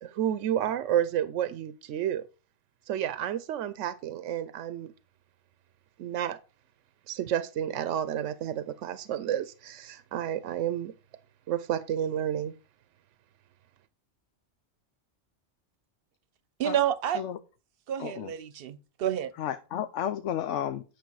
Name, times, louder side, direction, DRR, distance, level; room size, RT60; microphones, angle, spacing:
voice 1, 0.0-2.2 2.9-4.9 6.0-6.4 7.1-10.9 11.5-12.5, right 10 dB, 85° right, 0.9 m, -30 dB
voice 2, 16.6-17.2 17.9-19.3, right 10 dB, 55° right, 0.9 m, -29 dB
voice 3, 18.0-18.3 19.4-20.8, left 10 dB, 85° left, 1.0 m, -32 dB
9.7 x 6.4 x 4.7 m
omnidirectional pair, 1.2 m